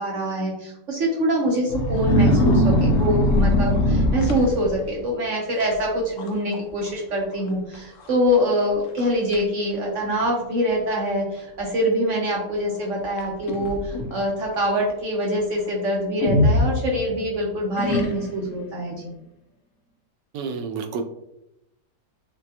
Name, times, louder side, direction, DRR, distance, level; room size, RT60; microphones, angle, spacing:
voice 1, 0.0-19.0, equal, 60° right, -1 dB, 0.8 m, -24 dB
sound 1, 1.7-5.0 5.6-5.9 6.2-6.6 6.9-7.0 7.7-7.8 8.4-8.5 9.0-9.4 10.2-10.3 13.2-14.2 16.2-17.3 17.8-18.5, left 1 dB, 65° left, 0.8 m, -21 dB
voice 2, 20.3-21.0, right 5 dB, 85° right, 5 dB, 1.2 m, -29 dB
5.9 x 2.3 x 2.7 m, 0.86 s
omnidirectional pair, 1.9 m